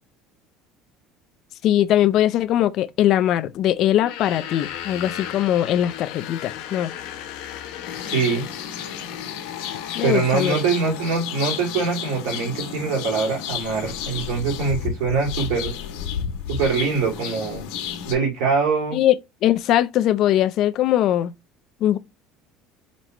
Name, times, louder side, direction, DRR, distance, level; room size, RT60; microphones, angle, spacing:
voice 1, 1.6-6.9 9.9-10.6 18.9-19.1 19.4-21.3 21.8-22.0, left 12 dB, 45° left, 0.4 m, -20 dB
sound 1, 3.9-11.2, left 10 dB, 70° left, 1.0 m, -36 dB
sound 2, 7.9-18.1, left 8 dB, 90° left, 1.2 m, -32 dB
voice 2, 8.0-8.4 10.0-15.7 16.5-17.7 18.1-19.0, right 5 dB, 85° right, 2.8 m, -23 dB
5.3 x 3.0 x 3.2 m
cardioid pair, 165°, 0 cm